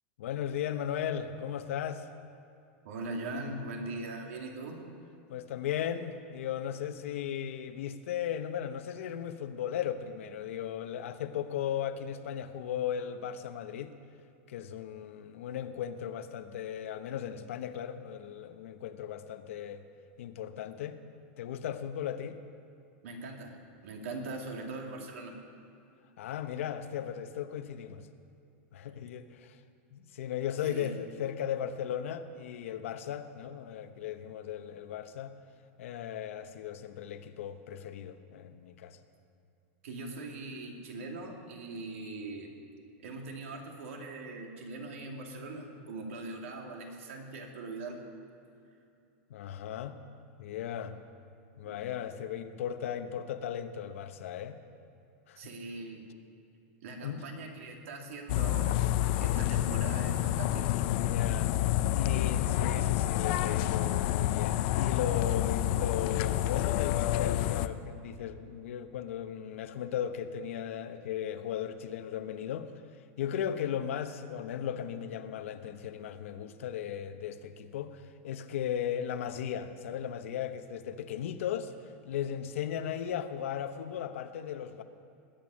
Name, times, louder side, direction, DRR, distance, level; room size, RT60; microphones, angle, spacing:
voice 1, 0.2-2.1 5.3-13.9 14.5-19.9 20.2-21.0 21.4-22.4 26.2-28.1 28.7-29.6 29.9-35.3 35.8-39.0 49.3-50.0 50.4-51.0 51.6-54.6 55.3-55.4 57.0-57.2 61.0-61.5 61.9-72.7 73.2-81.7 82.0-84.8, left 9 dB, 80° left, 9 dB, 1.0 m, -36 dB
voice 2, 2.8-4.8 23.0-25.4 30.6-31.0 39.8-42.5 43.0-48.0 51.6-51.8 55.4-56.0 56.8-58.8 59.2-60.7, right 2 dB, 85° right, 2 dB, 2.6 m, -41 dB
sound 1, 58.3-67.7, left 13 dB, 45° left, 0.5 m, -28 dB
21.0 x 9.0 x 6.4 m, 2.6 s
supercardioid pair, 170°, 7 cm